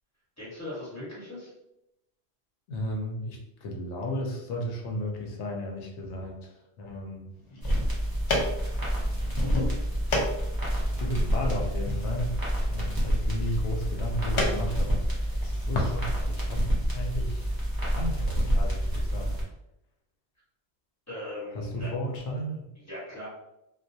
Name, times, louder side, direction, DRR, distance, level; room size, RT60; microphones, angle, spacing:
voice 1, 0.4-1.5 21.1-21.9 22.8-23.3, left 1 dB, 15° left, -8 dB, 1.0 m, -39 dB
voice 2, 2.7-6.5 6.8-7.3 11.0-12.4 12.7-15.0 15.4-16.7 16.9-17.5 17.9-19.4 21.5-22.7, equal, 90° left, 1 dB, 0.9 m, -34 dB
sound 1, 7.4-15.9, left 2 dB, 50° left, 0.3 m, -34 dB
sound 2, 7.6-19.4, equal, 25° right, 0.5 m, -28 dB
2.3 x 2.1 x 2.6 m, 0.86 s
omnidirectional pair, 1.1 m